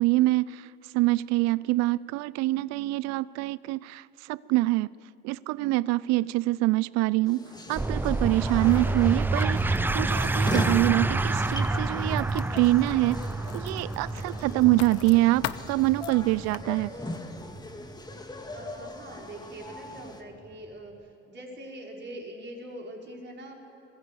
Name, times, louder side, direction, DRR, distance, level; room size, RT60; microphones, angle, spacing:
voice 1, 0.0-4.9 5.2-7.4 7.7-13.2 13.5-16.9, right 19 dB, 60° right, 20 dB, 0.4 m, -25 dB
sound 1, 7.3-20.2, left 2 dB, 15° left, 2.0 m, -40 dB
sound 2, 7.8-18.9, right 2 dB, 5° right, 0.5 m, -29 dB
Writing, 8.7-16.6, left 13 dB, 70° left, 1.0 m, -43 dB
voice 2, 18.5-23.5, right 1 dB, 35° right, -1 dB, 5.0 m, -43 dB
21.0 x 15.0 x 8.3 m, 2.7 s
supercardioid pair, 80°, 30 cm